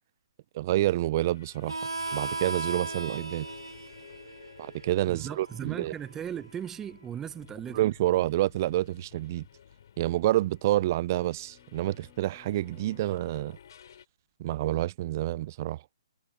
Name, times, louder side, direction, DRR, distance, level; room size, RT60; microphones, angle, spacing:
voice 1, 0.5-1.8 2.1-3.5 4.6-5.9 7.7-9.4 10.0-13.6 14.4-15.8, right 15 dB, 40° right, 0.7 m, -28 dB
sound 1, 1.2-14.0, left 8 dB, 55° left, 5.6 m, -53 dB
Harmonica, 1.7-6.9, right 3 dB, 85° right, 2.1 m, -38 dB
voice 2, 5.0-7.8, right 9 dB, 15° right, 1.1 m, -37 dB
Bowed string instrument, 10.3-13.5, left 14 dB, 20° left, 2.6 m, -60 dB
figure-of-eight pair, 130°, 3 cm